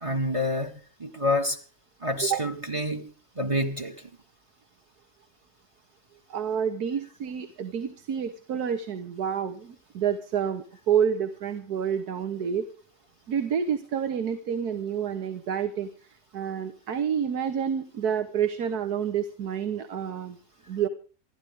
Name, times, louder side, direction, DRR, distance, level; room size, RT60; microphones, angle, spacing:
voice 1, 0.0-1.6 2.0-3.1 3.4-3.9, left 1 dB, 20° right, 1.4 m, -28 dB
voice 2, 6.3-12.7 13.3-15.9 16.3-20.4 20.7-20.9, right 8 dB, 70° right, 1.7 m, -28 dB
28.0 x 11.5 x 3.6 m
omnidirectional pair, 1.7 m